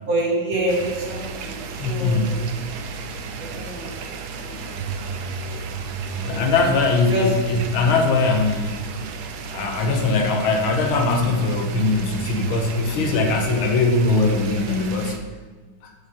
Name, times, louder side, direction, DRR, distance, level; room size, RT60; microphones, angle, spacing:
voice 1, 0.1-2.4 3.4-4.7 6.3-6.5 7.1-7.3, right 1 dB, 45° right, -4 dB, 1.8 m, -27 dB
sound 1, 0.7-15.2, right 5 dB, 75° right, 0.9 m, -33 dB
voice 2, 1.8-2.4 6.2-8.8 9.4-15.2, left 3 dB, 80° left, 3 dB, 1.7 m, -21 dB
12.0 x 5.0 x 2.8 m, 1.4 s
omnidirectional pair, 2.3 m